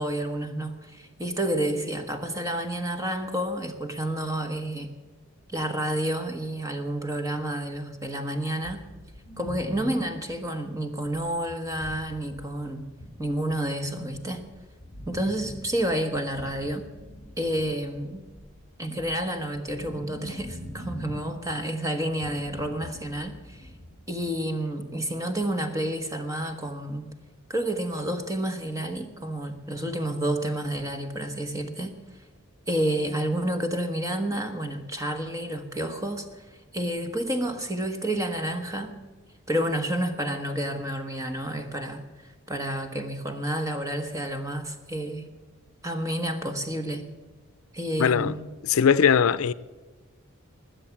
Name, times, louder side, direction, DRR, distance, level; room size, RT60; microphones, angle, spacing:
voice 1, 0.0-4.9 5.5-8.9 9.4-12.9 13.2-14.5 15.0-16.9 17.4-18.3 18.8-23.7 24.1-27.1 27.5-32.0 32.7-36.4 36.7-39.0 39.5-42.1 42.5-45.3 45.8-47.1 47.7-48.5, right 1 dB, 15° right, 1.2 m, -30 dB
sound 1, 8.6-24.3, equal, 5° left, 3.9 m, -43 dB
voice 2, 48.0-48.3 48.7-49.5, left 7 dB, 85° left, 0.5 m, -20 dB
20.0 x 7.7 x 7.2 m
head